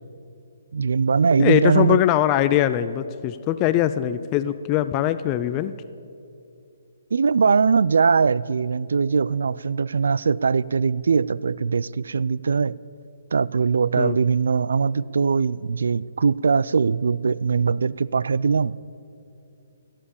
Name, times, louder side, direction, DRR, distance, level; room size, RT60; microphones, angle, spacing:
voice 1, 0.7-2.0 7.1-12.8 13.3-18.8, right 5 dB, 70° right, 21 dB, 0.3 m, -21 dB
voice 2, 1.4-5.7 14.0-14.2, left 12 dB, 25° left, 13 dB, 0.4 m, -22 dB
16.5 x 7.4 x 8.5 m, 2.6 s
hypercardioid pair, 140°, 0 cm